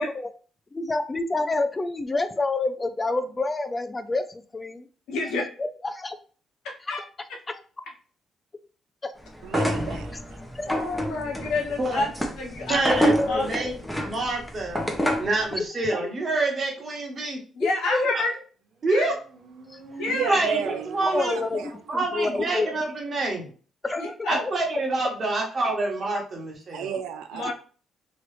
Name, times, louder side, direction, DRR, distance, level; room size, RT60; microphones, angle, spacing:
voice 1, 0.7-4.9 5.6-6.2 6.9-7.0 7.5-7.6 9.0-9.1 10.5-10.7 12.7-12.8 13.1-13.6 17.6-18.1 19.7-19.8 20.3-20.4 21.1-22.7 23.8-24.6, left 2 dB, 25° left, 0.4 m, -28 dB
voice 2, 5.1-5.4 6.6-7.0 10.7-12.1 12.4-12.8 13.3-13.4 17.6-18.4 18.9-19.1 20.0-20.4 24.0-24.4 27.3-27.5, left 2 dB, 85° left, 0.9 m, -28 dB
sound 1, 9.4-15.4, equal, 5° left, 0.8 m, -28 dB
voice 3, 9.4-10.1 20.1-21.7 22.2-22.4 26.7-27.5, right 8 dB, 90° right, 0.3 m, -33 dB
voice 4, 12.7-14.8 15.2-17.4 18.1-18.2 18.8-19.1 20.2-21.4 21.9-23.5 24.3-27.0, right 2 dB, 40° right, 1.3 m, -27 dB
Motorcycle, 18.9-22.5, right 4 dB, 60° right, 0.7 m, -43 dB
3.0 x 2.5 x 3.2 m
cardioid pair, 90°, 0 cm